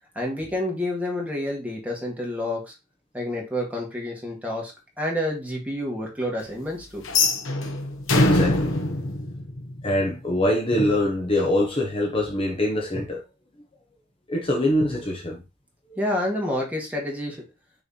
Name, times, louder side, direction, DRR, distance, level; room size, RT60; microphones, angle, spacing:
voice 1, 0.2-2.7 3.1-4.7 5.0-7.0 16.0-17.4, left 1 dB, 10° right, 2.0 m, -28 dB
sound 1, 7.0-10.1, left 2 dB, 85° left, 1.2 m, -23 dB
voice 2, 8.2-8.8 9.8-13.2 14.3-15.4 15.9-16.0, left 1 dB, 30° left, 1.1 m, -24 dB
6.4 x 3.5 x 4.4 m
head